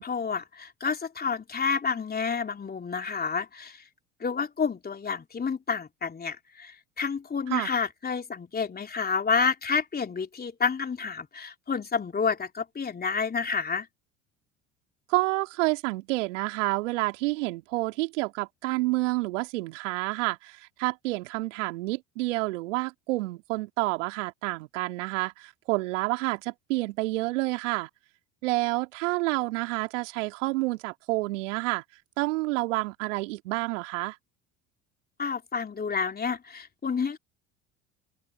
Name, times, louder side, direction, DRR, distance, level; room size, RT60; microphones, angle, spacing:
voice 1, 0.0-3.8 4.2-13.9 35.2-37.2, left 5 dB, 25° left, 3.4 m, -29 dB
voice 2, 15.1-27.9 28.4-31.8 32.2-34.2, right 21 dB, 70° right, 3.0 m, -29 dB
open air
hypercardioid pair, 70°, 38 cm